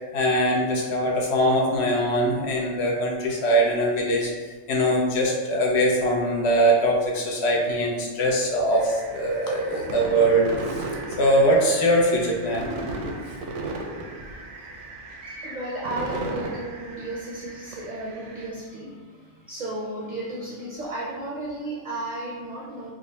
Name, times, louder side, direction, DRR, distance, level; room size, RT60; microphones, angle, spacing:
voice 1, 0.1-4.3 4.7-10.8 11.2-12.6, right 1 dB, 65° left, -1 dB, 0.9 m, -22 dB
sound 1, 8.7-18.5, right 2 dB, 80° right, 0.9 m, -36 dB
voice 2, 15.4-22.9, right 1 dB, 50° right, -4 dB, 0.5 m, -34 dB
3.6 x 2.0 x 3.9 m, 1.5 s
omnidirectional pair, 1.2 m